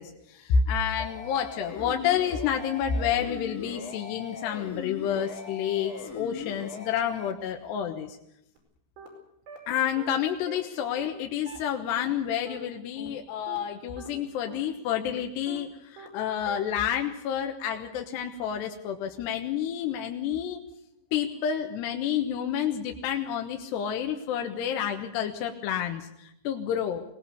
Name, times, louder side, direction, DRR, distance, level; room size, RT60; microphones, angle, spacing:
voice 1, 0.0-8.2 9.7-20.6 21.1-27.0, left 8 dB, 75° left, 3 dB, 3.3 m, -29 dB
sound 1, 1.0-7.3, left 5 dB, 30° left, 1.9 m, -40 dB
sound 2, 8.6-8.7 9.0-9.1 9.5-9.6 10.0-10.1 10.5-10.6 11.0-11.1 11.5-11.6 12.0-12.1 12.5-12.6 13.0-13.1 13.5-13.6 14.0-14.1 14.5-14.6 15.0-15.1 15.5-15.6 16.0-16.1 16.5-16.6, right 6 dB, 70° right, 7.0 m, -43 dB
23.5 x 19.0 x 6.9 m, 0.79 s
omnidirectional pair, 5.1 m